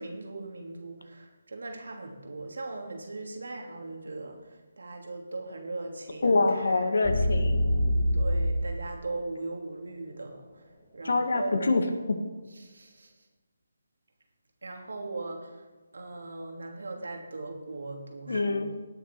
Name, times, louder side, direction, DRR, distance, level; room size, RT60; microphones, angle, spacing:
voice 1, 0.0-7.0 8.1-10.6 10.9-11.7 12.6-13.1 14.6-15.6 15.9-18.7, right 2 dB, 75° right, 2 dB, 2.8 m, -39 dB
voice 2, 6.2-7.6 11.0-12.2 18.3-18.7, left 3 dB, 70° left, 6 dB, 1.8 m, -25 dB
sound 1, 7.0-8.7, equal, 15° left, 3.2 m, -25 dB
18.5 x 6.9 x 4.6 m, 1.2 s
figure-of-eight pair, 155°, 0 cm